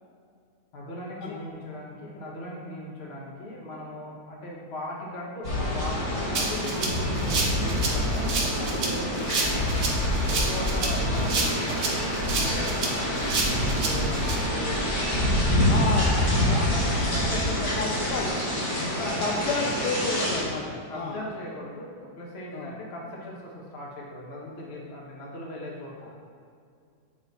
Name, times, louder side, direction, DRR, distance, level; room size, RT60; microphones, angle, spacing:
voice 1, 0.7-9.9 10.3-15.1 15.9-18.4 18.8-19.4 20.9-26.1, left 1 dB, 40° left, -3 dB, 1.3 m, -38 dB
sound 1, 5.4-20.4, left 1 dB, 60° left, 2.5 m, -26 dB
sound 2, 5.8-18.6, right 4 dB, 85° right, 1.3 m, -41 dB
Rattle (instrument), 6.3-14.3, right 3 dB, 60° right, 1.4 m, -29 dB
voice 2, 15.6-16.1 16.4-16.6 16.9-17.3 17.8-18.4 19.2-21.3 22.5-22.8 26.0-26.2, left 3 dB, 75° left, 0 dB, 1.1 m, -31 dB
8.2 x 4.1 x 4.1 m, 2.2 s
omnidirectional pair, 1.9 m